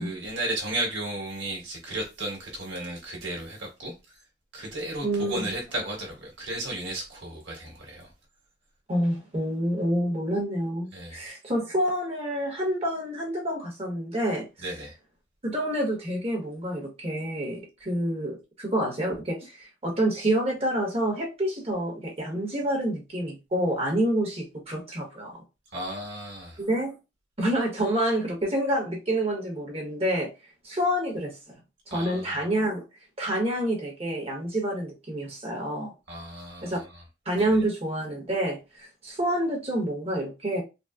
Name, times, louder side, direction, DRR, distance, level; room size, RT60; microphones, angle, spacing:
voice 1, 0.0-3.9 4.5-8.1 10.9-11.2 14.6-14.9 25.7-26.6 31.9-32.4 36.1-36.9 37.4-37.5, right 1 dB, 80° right, 1.4 m, -34 dB
voice 2, 5.0-5.5 8.9-14.7 15.4-25.4 26.6-26.9 27.4-30.3 30.6-31.3 31.9-32.8 33.2-35.9 36.6-36.8 37.2-40.6, right 1 dB, 35° right, 1.1 m, -28 dB
3.9 x 2.1 x 2.4 m
head